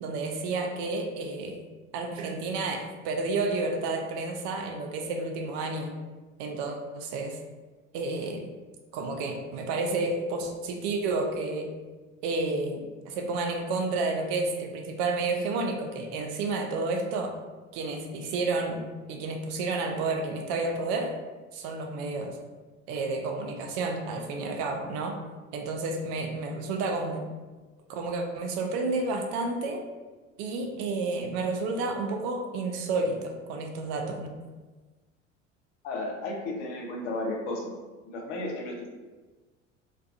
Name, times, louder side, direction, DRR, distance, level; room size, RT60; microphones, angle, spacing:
voice 1, 0.0-1.6 1.9-6.0 6.4-7.4 7.9-8.4 8.9-11.7 12.2-17.3 17.7-18.8 19.1-21.1 21.5-22.4 22.9-25.2 25.5-27.3 27.9-29.8 30.4-34.3, right 3 dB, 55° right, 3 dB, 0.5 m, -30 dB
voice 2, 35.8-37.7 38.0-38.9, left 2 dB, 65° left, 1 dB, 0.6 m, -33 dB
2.3 x 2.2 x 2.4 m, 1.3 s
figure-of-eight pair, 65°, 38 cm